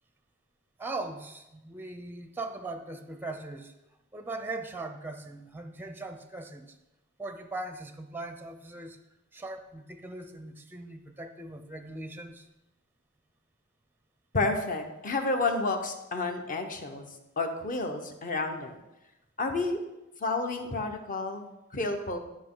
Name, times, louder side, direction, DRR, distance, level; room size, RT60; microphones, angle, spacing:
voice 1, 0.8-3.7 4.1-6.8 7.2-9.0 9.3-12.5, right 2 dB, 10° right, 8 dB, 0.5 m, -40 dB
voice 2, 14.3-18.8 19.4-19.8 20.2-22.2, left 3 dB, 40° left, 5 dB, 0.9 m, -30 dB
11.5 x 5.2 x 3.8 m, 0.96 s
head